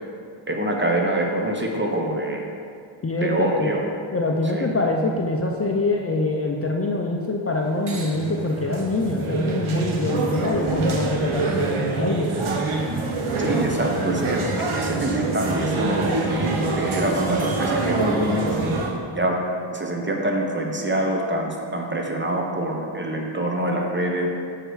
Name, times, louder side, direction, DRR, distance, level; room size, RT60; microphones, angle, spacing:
voice 1, 0.5-2.4 3.2-3.8 4.4-4.7 13.4-18.8 19.1-19.4 19.7-24.3, right 1 dB, 25° right, 1 dB, 0.8 m, -25 dB
voice 2, 3.0-3.7 4.1-12.3, left 2 dB, 30° left, 0 dB, 0.5 m, -24 dB
sound 1, 7.6-18.9, right 3 dB, 75° right, 0.9 m, -25 dB
6.5 x 4.8 x 4.7 m, 2.3 s
wide cardioid pair, 90°, 49 cm